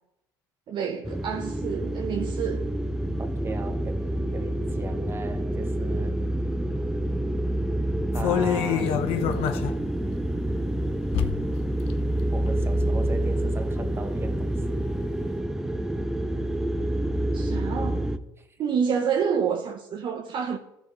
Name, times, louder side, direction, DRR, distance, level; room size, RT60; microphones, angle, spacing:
voice 1, 0.7-2.7 8.8-9.0 17.3-18.1 18.6-20.6, right 7 dB, 50° right, 0.8 m, -28 dB
sound 1, 1.0-18.2, right 1 dB, 5° right, 0.6 m, -28 dB
voice 2, 3.2-6.2 8.1-9.6 12.3-14.5, right 3 dB, 25° right, 1.2 m, -38 dB
sound 2, 8.1-9.8 10.2-10.3 11.1-11.5 11.8-12.0 12.5-13.0 13.4-13.5, left 10 dB, 65° left, 0.7 m, -27 dB
14.5 x 6.2 x 3.1 m
supercardioid pair, 80°, 10 cm